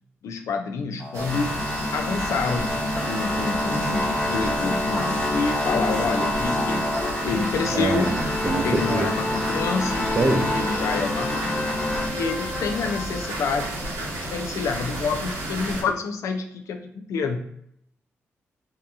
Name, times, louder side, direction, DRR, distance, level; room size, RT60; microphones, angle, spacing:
voice 1, 0.2-1.7 1.9-2.8 3.1-6.8 7.2-8.2 8.6-10.0 10.5-11.5 12.1-17.4, left 4 dB, 75° left, 4 dB, 0.4 m, -28 dB
sound 1, 1.0-12.1, left 1 dB, 15° left, 0.7 m, -27 dB
sound 2, 1.1-15.8, right 1 dB, 90° right, 0.7 m, -33 dB
sound 3, 2.9-14.2, left 2 dB, 40° left, 1.2 m, -33 dB
voice 2, 7.7-9.0 10.2-10.5, right 2 dB, 40° right, 5 dB, 0.5 m, -24 dB
2.8 x 2.4 x 2.3 m, 0.71 s
cardioid pair, 60°, 5 cm